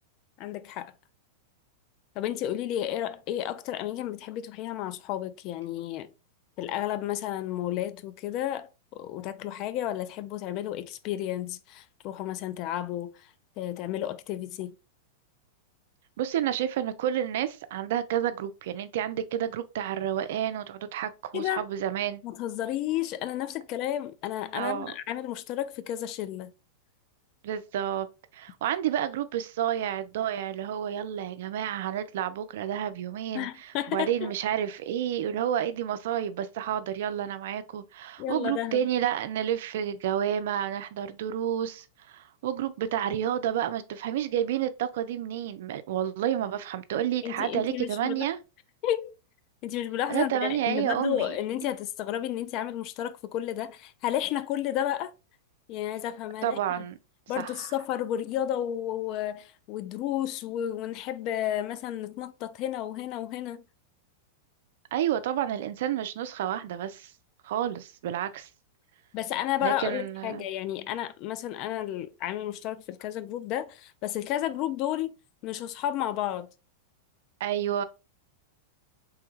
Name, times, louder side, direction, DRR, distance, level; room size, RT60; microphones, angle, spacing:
voice 1, 0.4-0.9 2.2-6.1 6.6-13.3 13.6-14.8 21.3-21.7 22.2-26.5 33.3-34.3 38.2-38.8 47.2-48.3 48.8-49.2 49.6-55.1 55.7-56.8 57.3-63.7 69.1-75.1 75.4-76.5, left 12 dB, 45° left, 0.3 m, -32 dB
voice 2, 16.2-22.2 24.5-24.9 27.4-28.1 28.3-48.4 50.1-51.3 56.4-57.0 57.4-57.7 64.9-67.1 67.4-68.5 69.6-70.5 77.4-77.8, right 10 dB, 65° right, 0.3 m, -30 dB
3.3 x 2.2 x 3.0 m
hypercardioid pair, 100°, 0 cm